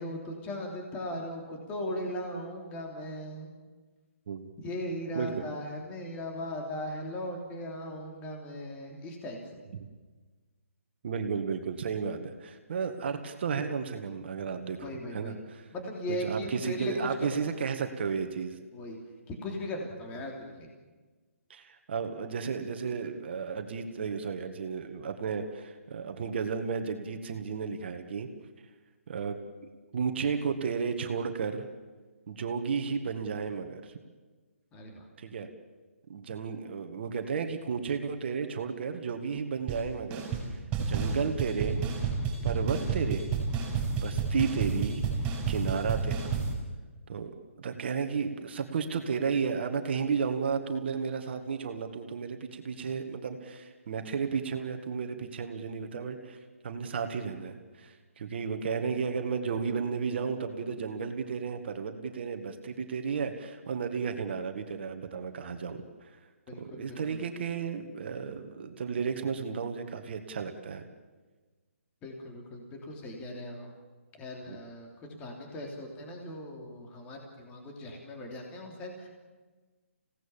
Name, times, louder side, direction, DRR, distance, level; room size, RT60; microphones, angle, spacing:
voice 1, 0.0-3.5 4.6-9.4 14.8-15.4 15.7-17.3 18.7-19.0 19.3-20.7 34.7-35.1 66.5-67.2 72.0-73.7 74.2-79.1, left 1 dB, 20° left, 1 dB, 3.4 m, -38 dB
voice 2, 11.0-14.8 15.1-15.7 16.1-18.6 21.5-28.3 29.1-29.4 29.9-31.7 32.3-33.9 35.2-35.5 36.1-41.9 42.4-43.3 43.9-45.0 45.5-46.4 47.1-47.3 47.6-56.4 56.6-66.2 66.6-70.8 74.5-74.6, right 6 dB, 50° right, 6 dB, 1.9 m, -33 dB
sound 1, 39.7-39.8 40.1-40.5 40.7-46.5, right 5 dB, 20° right, 6.5 m, -30 dB
26.5 x 17.5 x 7.4 m, 1.3 s
figure-of-eight pair, 145°, 7 cm